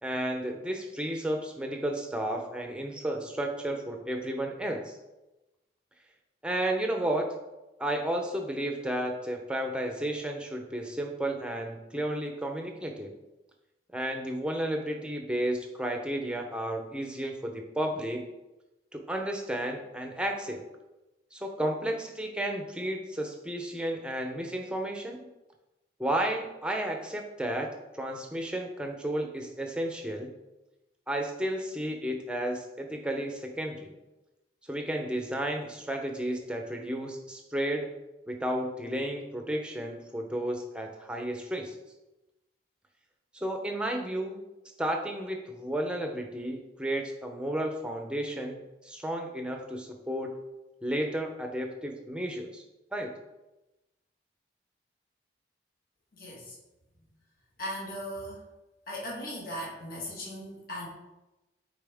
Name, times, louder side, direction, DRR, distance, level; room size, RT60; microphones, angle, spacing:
voice 1, 0.0-4.9 6.4-7.3 7.8-13.1 13.9-18.3 18.9-20.6 21.3-25.3 26.0-27.7 27.9-30.3 31.1-33.9 34.7-37.9 38.3-41.7 43.3-44.4 44.8-50.4 50.8-52.6 52.9-53.1, right 1 dB, 5° right, 3 dB, 0.6 m, -32 dB
voice 2, 56.1-56.5 57.0-57.1 57.6-58.4 58.9-60.9, equal, 50° left, -5 dB, 1.7 m, -38 dB
8.6 x 4.1 x 3.5 m, 1.0 s
head